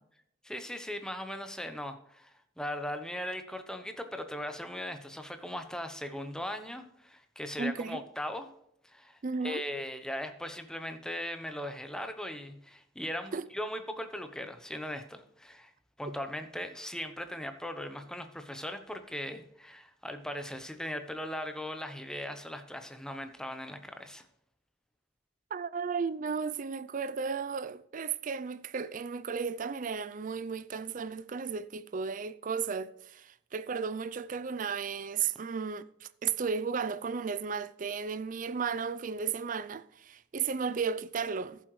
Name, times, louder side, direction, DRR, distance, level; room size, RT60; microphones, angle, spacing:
voice 1, 0.4-8.5 8.8-9.2 9.4-15.7 16.0-24.2, left 1 dB, 5° left, 0.9 m, -39 dB
voice 2, 7.6-8.0 9.2-9.6 13.3-13.5 25.5-41.6, right 5 dB, 45° right, 0.4 m, -34 dB
14.0 x 7.6 x 3.2 m
head